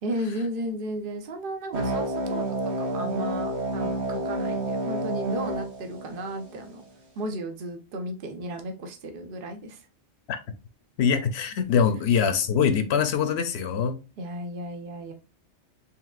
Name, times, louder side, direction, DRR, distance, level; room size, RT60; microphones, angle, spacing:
voice 1, 0.0-6.8 7.2-9.9 14.2-15.1, right 1 dB, 55° right, 0.9 m, -34 dB
sound 1, 1.7-6.7, right 1 dB, 75° right, 1.4 m, -29 dB
voice 2, 11.0-14.0, left 7 dB, 70° left, 0.9 m, -23 dB
4.7 x 3.5 x 2.4 m
omnidirectional pair, 1.1 m